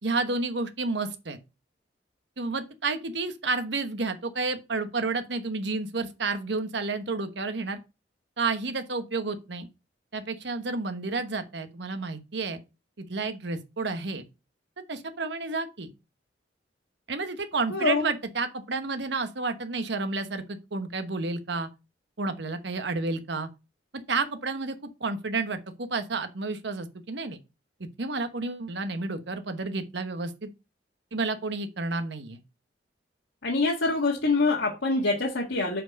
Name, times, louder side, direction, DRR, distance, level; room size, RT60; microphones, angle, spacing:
voice 1, 0.0-1.4 2.4-7.8 8.4-9.7 10.1-12.6 13.0-14.2 14.9-15.9 17.1-21.7 22.2-23.5 24.1-24.7 25.0-27.4 28.0-30.5 31.1-32.4, right 3 dB, 70° right, 1.1 m, -30 dB
voice 2, 17.7-18.0 33.4-35.8, left 3 dB, 85° left, 1.7 m, -25 dB
7.8 x 4.5 x 5.2 m
head